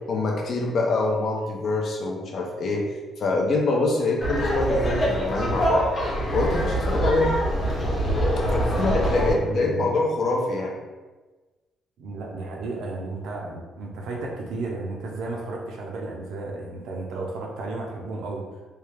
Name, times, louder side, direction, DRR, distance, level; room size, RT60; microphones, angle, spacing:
voice 1, 0.1-2.9 3.2-5.9 6.3-7.3 8.5-10.7, left 2 dB, 50° left, 0 dB, 0.5 m, -25 dB
Laughter, 4.2-9.3, equal, 35° left, 1.0 m, -24 dB
voice 2, 8.4-9.9 12.0-18.5, right 2 dB, 75° right, -1 dB, 0.6 m, -33 dB
3.2 x 2.3 x 3.2 m, 1.2 s
cardioid pair, 150°, 0 cm